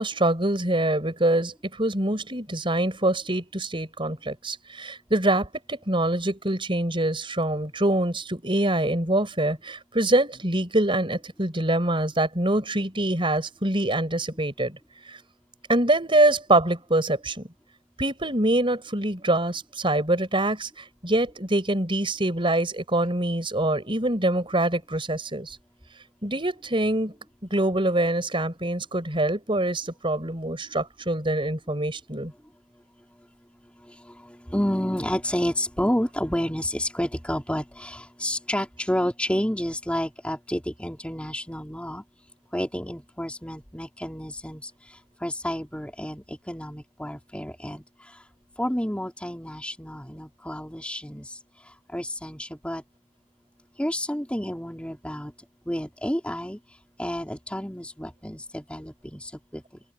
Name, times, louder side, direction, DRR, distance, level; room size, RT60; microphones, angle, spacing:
voice 1, 0.0-14.8 15.1-15.2 15.7-17.5 18.0-25.6 26.2-27.1 27.5-32.3, right 1 dB, 25° right, 5.3 m, -25 dB
voice 2, 34.5-42.0 42.5-44.7 45.2-47.8 48.6-51.2 51.9-52.8 53.8-55.3 55.7-56.6 57.0-59.6, equal, 5° left, 3.1 m, -30 dB
open air
head